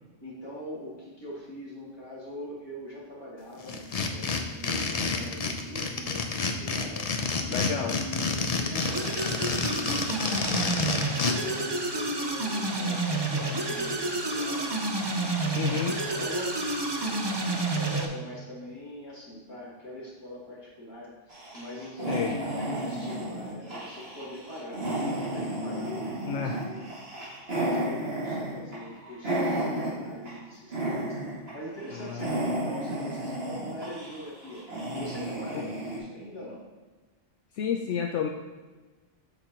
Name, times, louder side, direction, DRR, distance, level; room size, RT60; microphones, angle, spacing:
voice 1, 0.2-7.1 7.7-11.0 11.3-14.7 15.3-16.6 16.9-26.8 27.5-31.2 31.5-34.7 34.9-36.6, left 1 dB, 20° left, -8 dB, 2.5 m, -42 dB
sound 1, 3.7-11.3, left 4 dB, 45° left, 0.5 m, -29 dB
voice 2, 7.5-8.0 15.5-15.9 22.1-22.4 26.2-26.6 31.9-32.3 37.5-38.3, left 7 dB, 75° left, 3 dB, 0.9 m, -30 dB
sound 2, 8.8-18.1, right 2 dB, 30° right, 0.5 m, -29 dB
sound 3, 21.3-30.4 30.7-31.5 31.8-36.0, right 1 dB, 55° right, 2.3 m, -32 dB
8.2 x 6.0 x 2.9 m, 1.3 s
omnidirectional pair, 1.3 m